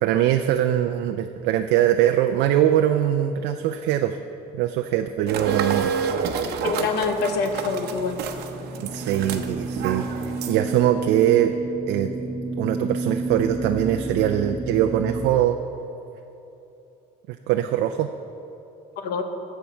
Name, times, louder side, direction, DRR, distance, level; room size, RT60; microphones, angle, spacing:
voice 1, 0.0-4.2 4.5-5.9 8.8-11.5 11.9-12.1 12.6-15.6 17.3-18.1, right 11 dB, 90° right, 7 dB, 0.4 m, -22 dB
sound 1, 5.3-10.8, right 6 dB, 75° right, 0.8 m, -29 dB
sound 2, 5.9-15.3, right 3 dB, 20° right, 1.0 m, -32 dB
voice 2, 6.6-8.2 19.0-19.2, left 5 dB, 75° left, 6 dB, 0.9 m, -26 dB
13.5 x 4.6 x 7.4 m, 2.9 s
cardioid pair, 110°, 17 cm